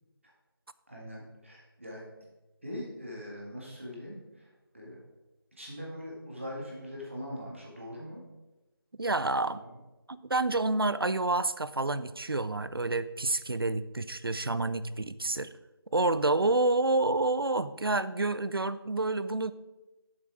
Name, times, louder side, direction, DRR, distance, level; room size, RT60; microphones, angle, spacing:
voice 1, 0.9-2.0 2.6-5.0 5.6-8.2 9.3-9.8, equal, 30° right, -3 dB, 1.9 m, -42 dB
voice 2, 9.0-9.6 10.1-15.5 15.9-19.5, right 2 dB, 65° right, 16 dB, 0.5 m, -28 dB
7.4 x 6.0 x 4.8 m, 1.1 s
figure-of-eight pair, 180°, 13 cm